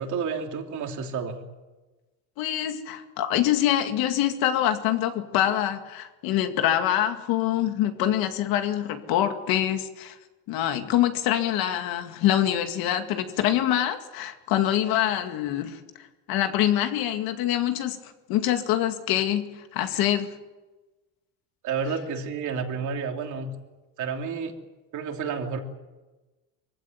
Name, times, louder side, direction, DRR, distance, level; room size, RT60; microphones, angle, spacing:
voice 1, 0.0-1.4 21.6-23.5 24.0-24.5 24.9-25.6, right 5 dB, 55° right, 3 dB, 3.3 m, -30 dB
voice 2, 2.4-10.2 10.5-15.8 16.3-18.0 18.3-20.3, left 11 dB, 75° left, 7 dB, 2.3 m, -25 dB
23.5 x 16.0 x 9.4 m, 1.2 s
cardioid pair, 135°, 36 cm